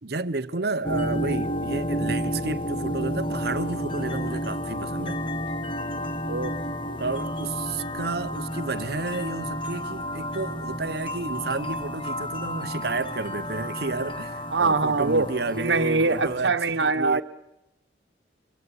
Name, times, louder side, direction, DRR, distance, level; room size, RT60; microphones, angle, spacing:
voice 1, 0.0-5.2 7.0-17.2, right 3 dB, 55° right, 0.9 m, -31 dB
sound 1, 0.8-16.4, equal, 25° left, 1.2 m, -31 dB
voice 2, 14.5-15.3 15.6-17.2, right 3 dB, 75° right, 1.2 m, -23 dB
24.5 x 15.5 x 9.8 m
head